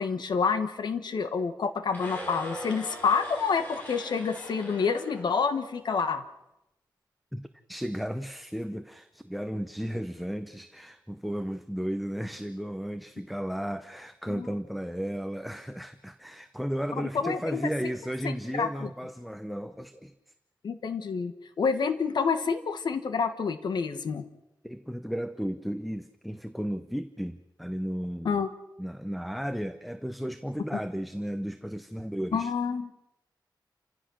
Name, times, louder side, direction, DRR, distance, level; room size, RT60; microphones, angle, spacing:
voice 1, 0.0-6.2 14.3-14.5 17.0-17.6 18.2-18.9 20.6-24.2 28.2-28.5 32.3-32.9, left 5 dB, 70° left, 1.4 m, -28 dB
sound 1, 1.9-6.0, equal, 20° left, 7.2 m, -41 dB
voice 2, 7.3-20.1 24.6-28.4 28.8-32.5, equal, ahead, 0.7 m, -34 dB
29.5 x 16.0 x 6.4 m
wide cardioid pair, 140°, 8 cm